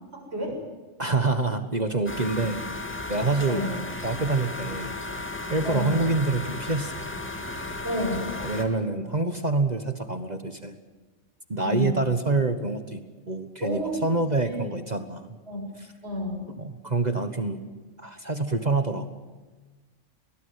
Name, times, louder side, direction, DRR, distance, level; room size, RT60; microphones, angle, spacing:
voice 1, 0.1-0.6 3.5-3.8 5.6-6.0 7.8-8.3 11.6-12.0 13.6-14.1 14.4-14.7 15.5-15.6 16.0-16.5, equal, 55° right, 1 dB, 7.3 m, -30 dB
voice 2, 1.0-2.6 3.1-3.6 4.0-4.9 5.5-6.9 8.4-10.8 11.5-13.0 13.3-15.4 16.6-17.6 18.0-19.1, right 3 dB, 35° right, 9 dB, 1.4 m, -26 dB
sound 1, 2.1-8.6, left 2 dB, 10° left, 2.2 m, -35 dB
21.5 x 19.0 x 9.8 m, 1.3 s
omnidirectional pair, 1.3 m